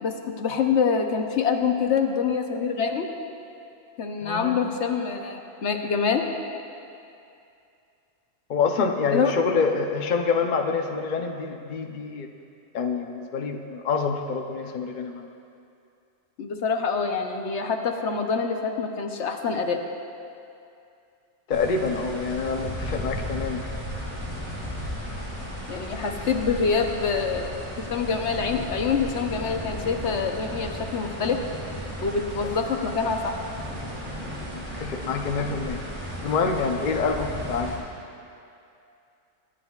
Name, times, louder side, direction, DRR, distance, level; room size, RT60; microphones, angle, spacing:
voice 1, 0.0-3.1 4.0-6.2 9.1-9.3 16.4-19.8 25.7-31.4 32.0-33.3, left 5 dB, 70° left, 4 dB, 1.1 m, -26 dB
voice 2, 4.2-4.6 8.5-12.3 12.7-15.3 21.5-23.7 32.4-32.5 34.5-35.8 36.2-37.8, left 5 dB, 45° left, 3 dB, 0.7 m, -26 dB
sound 1, 21.5-37.8, equal, 35° right, 2.9 m, -35 dB
23.0 x 10.0 x 2.4 m, 2.6 s
omnidirectional pair, 1.3 m